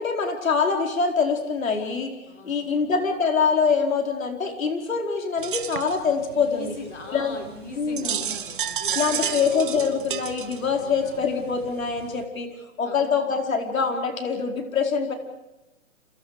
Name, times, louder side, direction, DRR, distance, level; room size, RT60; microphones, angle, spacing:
voice 1, 0.0-2.1 2.4-6.7 7.1-7.4 7.8-8.2 8.9-12.5 12.8-15.1, left 5 dB, 85° left, 3 dB, 4.7 m, -24 dB
voice 2, 2.3-2.9 6.3-10.2 10.8-11.6 12.8-13.4, left 3 dB, 60° left, 3 dB, 5.4 m, -41 dB
sound 1, 5.4-12.3, right 8 dB, 40° right, 1.5 m, -32 dB
30.0 x 27.0 x 5.0 m, 0.99 s
hypercardioid pair, 175°, 40 cm